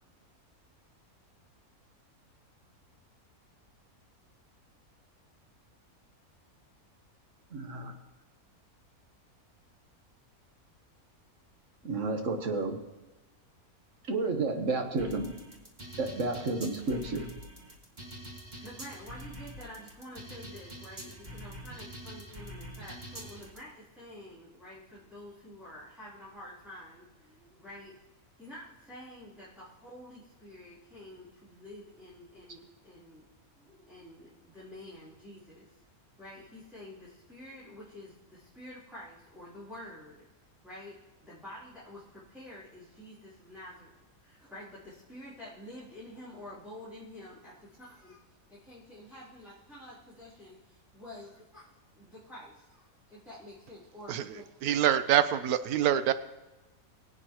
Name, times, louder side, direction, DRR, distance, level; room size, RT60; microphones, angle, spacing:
voice 1, 7.5-7.9 11.8-12.8 14.1-15.3 16.0-17.3, right 3 dB, 60° right, 4 dB, 1.5 m, -31 dB
sound 1, 15.0-23.6, equal, 30° right, 1.9 m, -45 dB
voice 2, 18.6-27.9 28.4-33.2 33.5-35.7 36.2-40.2 40.6-40.9 41.2-43.9 44.2-48.2 48.5-51.7 51.9-54.7, left 1 dB, ahead, -12 dB, 3.4 m, -49 dB
voice 3, 54.6-56.1, right 10 dB, 90° right, 12 dB, 1.1 m, -25 dB
23.0 x 8.6 x 3.0 m, 1.1 s
omnidirectional pair, 1.5 m